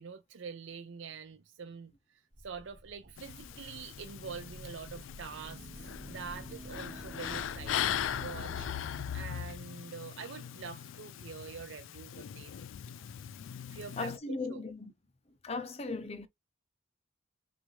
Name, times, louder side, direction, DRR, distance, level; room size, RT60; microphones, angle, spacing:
voice 1, 0.0-12.5 13.7-14.6, right 5 dB, 70° right, 0.5 m, -46 dB
sound 1, 2.3-8.8, equal, 25° right, 0.9 m, -49 dB
sound 2, 3.2-14.2, left 9 dB, 80° left, 0.4 m, -40 dB
voice 2, 14.0-14.9 15.4-16.3, left 3 dB, 30° left, 0.6 m, -37 dB
6.1 x 2.5 x 3.2 m
head